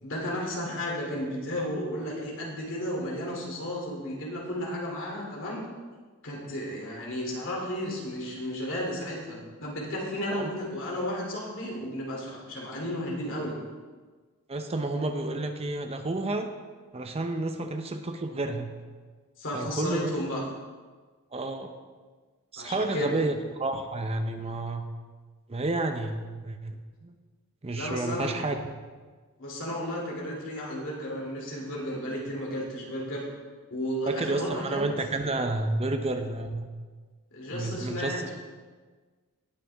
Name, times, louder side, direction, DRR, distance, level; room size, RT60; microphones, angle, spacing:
voice 1, 0.0-5.6 6.2-13.5 19.4-20.4 22.6-23.2 27.7-28.3 29.4-33.3 33.7-34.8 37.3-38.3, equal, 60° left, -3 dB, 3.0 m, -33 dB
voice 2, 14.5-16.5 16.9-18.7 19.5-20.2 21.3-21.7 22.5-24.9 25.5-26.8 27.0-27.1 27.6-28.6 34.1-36.7 37.5-38.3, right 2 dB, 25° right, 6 dB, 0.7 m, -30 dB
19.0 x 6.6 x 3.5 m, 1.4 s
head